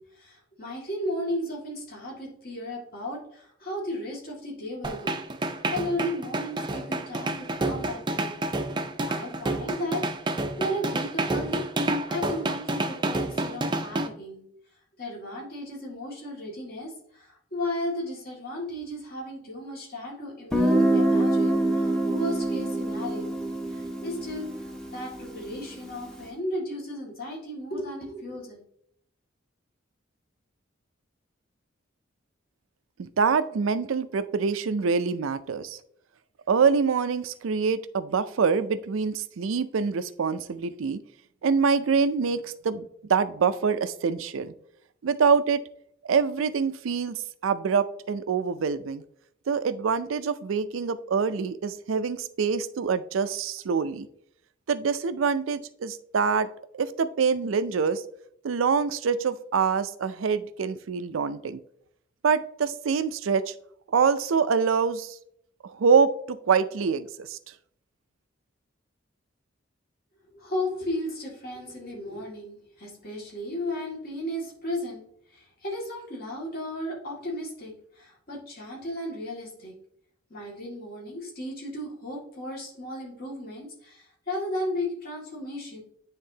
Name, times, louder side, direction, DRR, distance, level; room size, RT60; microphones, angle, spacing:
voice 1, 0.0-8.4 9.1-10.3 10.6-14.4 15.0-23.4 23.7-28.6 70.3-75.0 75.3-79.7 80.3-85.8, left 1 dB, 50° left, -4 dB, 2.1 m, -35 dB
sound 1, 4.8-14.1, right 2 dB, 25° right, 0.5 m, -29 dB
Guitar, 20.5-26.1, right 1 dB, 5° left, 0.7 m, -25 dB
voice 2, 33.0-35.8 36.5-41.0 41.4-44.5 45.0-45.6 46.0-49.0 49.5-54.1 54.7-56.5 56.7-58.0 58.4-61.6 62.2-63.5 63.9-65.2 65.6-67.4, right 5 dB, 85° right, 13 dB, 0.4 m, -25 dB
9.6 x 3.6 x 2.8 m, 0.69 s
head